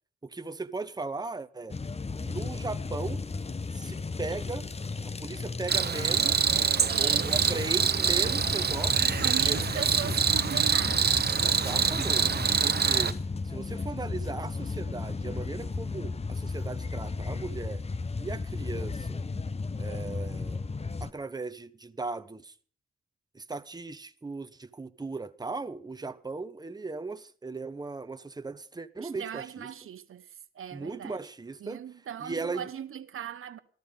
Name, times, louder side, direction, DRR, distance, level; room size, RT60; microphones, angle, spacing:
voice 1, 0.2-1.8 2.2-3.2 3.7-4.7 5.0-6.5 7.0-9.2 9.4-10.1 11.4-13.2 13.4-17.8 18.2-19.2 19.8-20.6 21.0-22.5 23.3-29.7 30.7-31.8 32.2-32.7, right 3 dB, 20° right, 0.9 m, -37 dB
sound 1, 1.7-21.1, left 4 dB, 30° left, 0.7 m, -34 dB
Cricket, 5.7-13.1, right 6 dB, 50° right, 1.0 m, -25 dB
voice 2, 6.9-7.4 9.0-11.4 29.0-30.3 30.5-31.2 31.6-33.6, right 9 dB, 85° right, 0.9 m, -39 dB
14.0 x 13.5 x 5.3 m
cardioid pair, 80°, 21 cm